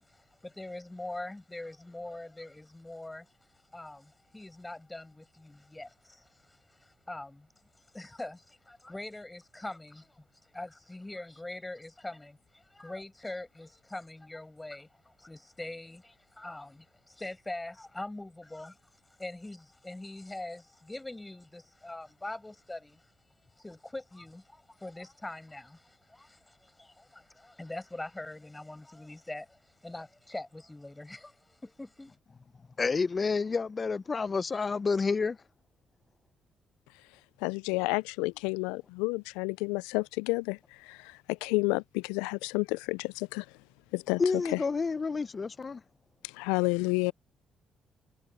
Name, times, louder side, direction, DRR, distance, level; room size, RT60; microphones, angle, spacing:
voice 1, 0.0-3.3 3.7-7.5 7.9-23.1 23.6-32.2, left 2 dB, 15° left, 6.9 m, -43 dB
voice 2, 32.8-35.4 44.2-45.8, left 4 dB, 40° left, 0.7 m, -29 dB
voice 3, 37.4-40.6 40.9-43.4 43.9-44.2 44.5-44.6 46.4-47.1, left 26 dB, 80° left, 0.4 m, -30 dB
hypercardioid pair, 45°, 0 cm